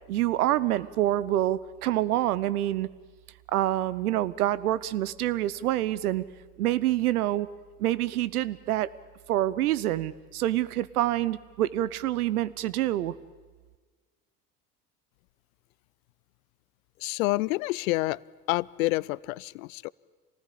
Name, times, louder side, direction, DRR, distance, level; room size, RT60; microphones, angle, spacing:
voice 1, 0.1-2.9 3.5-6.2 6.6-7.5 7.8-8.9 9.3-13.1, right 14 dB, 75° right, 18 dB, 0.9 m, -26 dB
voice 2, 17.0-18.2 18.5-19.9, left 21 dB, 65° left, 23 dB, 0.6 m, -28 dB
26.5 x 19.0 x 8.5 m, 1.4 s
hypercardioid pair, 70°, 45 cm